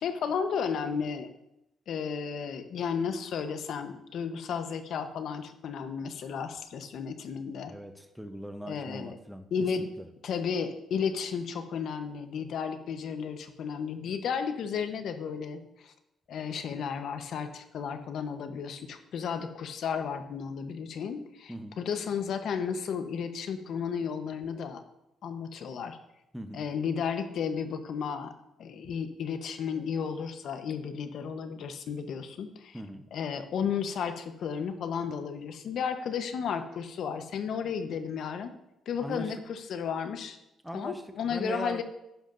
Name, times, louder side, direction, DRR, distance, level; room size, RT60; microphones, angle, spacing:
voice 1, 0.0-1.3 1.9-7.7 8.6-9.2 9.5-9.9 10.2-15.9 16.3-24.8 25.2-26.0 26.5-28.3 28.6-32.8 33.1-38.5 38.9-40.4 40.7-41.8, left 6 dB, 70° left, 8 dB, 1.0 m, -33 dB
voice 2, 7.7-9.5 9.8-10.1 21.5-21.8 26.3-26.7 32.7-33.0 39.0-39.3 40.6-41.0 41.3-41.8, equal, ahead, 7 dB, 0.8 m, -40 dB
11.5 x 10.0 x 2.6 m, 0.88 s
cardioid pair, 90°, 0 cm